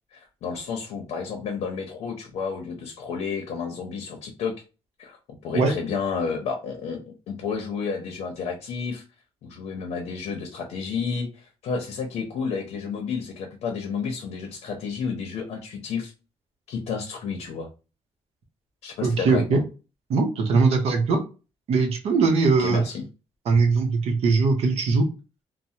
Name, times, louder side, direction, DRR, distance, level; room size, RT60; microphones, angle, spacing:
voice 1, 0.1-4.5 5.0-5.2 5.4-7.0 7.3-9.0 9.4-16.1 16.7-17.7 18.8-19.6 22.6-23.0, left 5 dB, 85° left, 3 dB, 0.7 m, -31 dB
voice 2, 19.0-19.6 20.1-21.2 21.7-22.8 23.5-25.1, right 4 dB, 75° right, 4 dB, 0.8 m, -20 dB
3.2 x 2.1 x 2.8 m, 0.31 s
cardioid pair, 140°, 11 cm